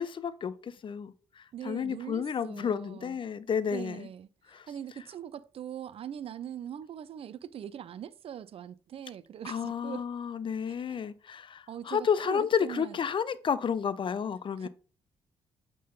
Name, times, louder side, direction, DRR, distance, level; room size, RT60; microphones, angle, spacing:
voice 1, 0.0-4.1 4.5-4.7 9.4-14.7, left 7 dB, 40° left, 0.6 m, -31 dB
voice 2, 1.5-3.2 3.7-10.1 10.7-11.0 11.7-13.0 14.6-14.7, right 9 dB, 50° right, 0.5 m, -42 dB
8.4 x 3.8 x 3.8 m
hypercardioid pair, 40°, 12 cm